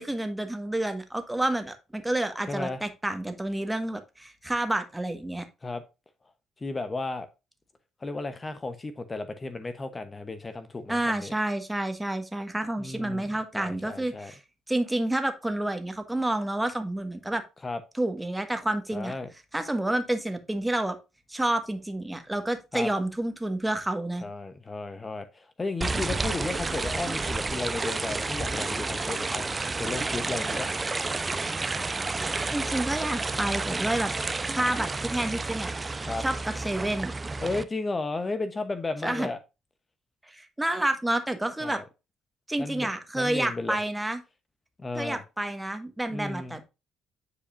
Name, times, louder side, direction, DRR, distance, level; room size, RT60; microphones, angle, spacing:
voice 1, 0.0-5.4 10.9-14.4 14.7-17.4 18.0-19.1 19.5-20.9 21.3-24.2 32.5-34.1 34.5-35.7 36.2-37.1 39.0-39.3 40.3-41.8 42.5-44.2 44.9-46.6, right 1 dB, 10° right, 1.6 m, -29 dB
voice 2, 2.5-2.8 5.6-5.8 6.6-7.3 8.0-11.3 12.8-13.3 13.5-14.3 17.6-17.8 18.9-19.3 22.7-22.9 24.2-30.7 36.0-36.2 37.4-39.4 41.6-41.8 42.6-42.9 43.1-43.8 44.8-45.2 46.1-46.6, left 3 dB, 30° left, 0.9 m, -34 dB
sound 1, 25.8-37.6, right 3 dB, 25° right, 0.7 m, -30 dB
9.8 x 4.9 x 2.6 m
hypercardioid pair, 55°, 0 cm